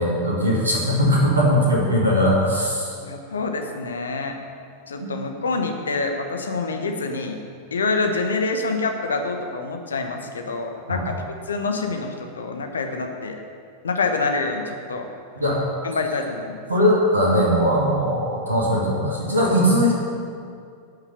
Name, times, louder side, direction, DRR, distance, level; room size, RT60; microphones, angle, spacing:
voice 1, 0.0-2.9 5.0-5.1 10.9-11.1 15.4-15.6 16.7-19.9, equal, 80° right, -4 dB, 2.4 m, -20 dB
voice 2, 3.0-4.4 4.9-7.4 7.7-13.4 13.8-15.1 15.8-16.6, left 3 dB, 70° left, 4 dB, 1.2 m, -26 dB
10.5 x 6.1 x 8.1 m, 2.3 s
figure-of-eight pair, 90°, 0 cm